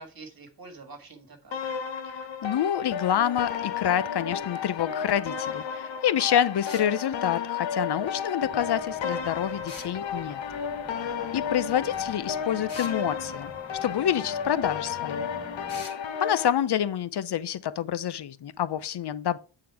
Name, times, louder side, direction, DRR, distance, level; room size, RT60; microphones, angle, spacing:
voice 1, 0.0-1.8 11.0-11.4 15.3-15.9, right 3 dB, 50° right, 1.6 m, -48 dB
sound 1, 1.5-16.5, left 7 dB, 80° left, 0.9 m, -33 dB
voice 2, 2.4-10.4 11.3-13.5 13.8-15.3 16.2-19.4, left 10 dB, 60° left, 0.6 m, -27 dB
sound 2, 6.6-6.9 9.7-9.9 12.7-13.0 15.7-16.0, left 3 dB, 45° left, 2.0 m, -42 dB
sound 3, 8.4-15.8, left 1 dB, 5° left, 1.0 m, -49 dB
8.6 x 3.8 x 4.6 m
wide cardioid pair, 145°, 45 cm